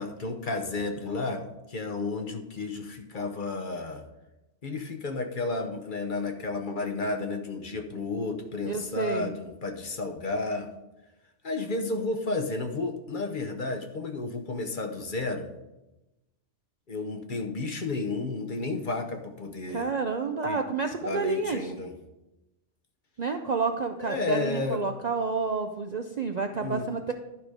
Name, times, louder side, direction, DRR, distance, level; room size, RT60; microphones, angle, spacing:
voice 1, 0.0-4.1 4.6-10.7 11.4-15.5 16.9-19.9 20.4-20.6 21.0-22.0 24.0-24.8 26.6-27.1, left 3 dB, 45° left, 5 dB, 0.9 m, -32 dB
voice 2, 8.6-9.3 19.7-21.7 23.2-27.1, right 4 dB, 50° right, 5 dB, 0.5 m, -29 dB
11.0 x 5.1 x 4.8 m, 0.99 s
omnidirectional pair, 1.2 m